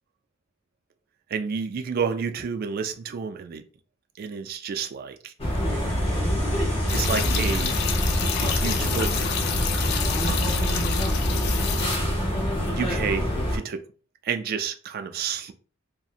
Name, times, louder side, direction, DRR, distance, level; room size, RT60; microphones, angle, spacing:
voice 1, 1.3-3.6 4.2-5.3 6.9-7.8 8.4-9.3 10.2-10.9 12.1-12.4 12.7-13.8 14.2-15.5, right 6 dB, 50° right, 0.3 m, -30 dB
sound 1, 5.4-13.6, equal, 30° left, 0.8 m, -26 dB
sound 2, 5.4-9.9, equal, 10° left, 1.5 m, -34 dB
sound 3, 6.9-12.0, left 5 dB, 50° left, 0.3 m, -28 dB
2.7 x 2.0 x 2.4 m
head